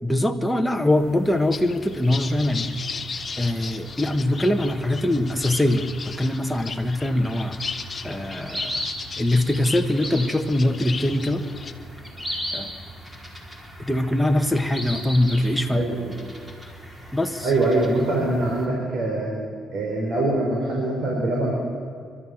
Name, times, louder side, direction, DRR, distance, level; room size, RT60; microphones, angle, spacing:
voice 1, 0.0-2.7 3.4-7.6 8.0-8.9 9.2-11.4 12.5-12.7 13.8-15.8 17.1-17.5, left 1 dB, 5° left, 4 dB, 1.4 m, -22 dB
sound 1, 0.9-18.7, equal, 15° right, 4.5 m, -38 dB
sound 2, 1.5-11.7, left 5 dB, 35° left, 1.4 m, -36 dB
voice 2, 15.7-16.0 17.4-19.3 19.7-21.5, right 2 dB, 60° right, -2 dB, 5.0 m, -23 dB
30.0 x 12.5 x 7.3 m, 2.2 s
cardioid pair, 90°, 0 cm